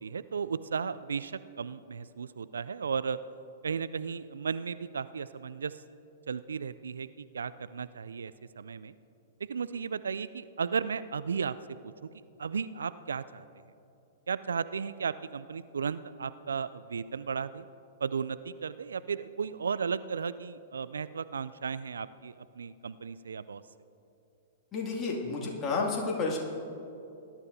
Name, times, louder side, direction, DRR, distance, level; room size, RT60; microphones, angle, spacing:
voice 1, 0.0-3.2 3.6-5.7 6.3-8.9 9.5-11.6 11.8-13.5 14.3-17.7 18.0-23.6, right 6 dB, 75° right, 16 dB, 0.3 m, -35 dB
voice 2, 24.7-26.4, left 3 dB, 25° left, -2 dB, 2.3 m, -31 dB
20.0 x 12.0 x 2.7 m, 2.7 s
figure-of-eight pair, 110°, 0 cm